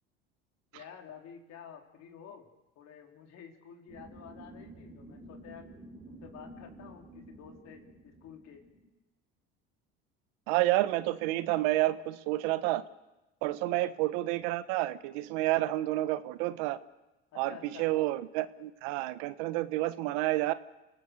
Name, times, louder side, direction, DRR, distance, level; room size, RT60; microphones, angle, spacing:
voice 1, 0.7-2.5 2.8-5.7 6.1-8.7 13.6-13.9 17.3-17.9, left 8 dB, 60° left, 3 dB, 3.7 m, -50 dB
sound 1, 3.9-8.9, right 1 dB, 25° right, 3.8 m, -51 dB
voice 2, 10.5-12.8 13.4-16.8 17.3-20.5, right 16 dB, 75° right, 14 dB, 1.1 m, -29 dB
27.5 x 17.5 x 6.8 m, 1.0 s
hypercardioid pair, 75°, 30 cm